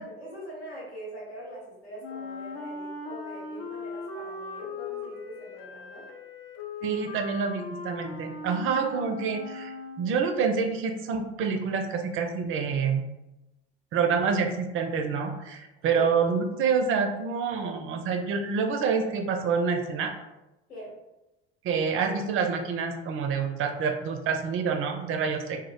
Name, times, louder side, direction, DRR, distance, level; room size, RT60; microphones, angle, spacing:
voice 1, 0.0-6.1 15.9-16.1 20.7-21.0, equal, 90° left, -7 dB, 1.2 m, -43 dB
Wind instrument woodwind instrument, 2.0-10.3, left 3 dB, 55° left, 0.5 m, -39 dB
voice 2, 6.8-13.0 13.9-20.1 21.6-25.6, right 5 dB, 45° right, 5 dB, 0.4 m, -27 dB
2.1 x 2.0 x 2.9 m, 0.97 s
hypercardioid pair, 65°, 31 cm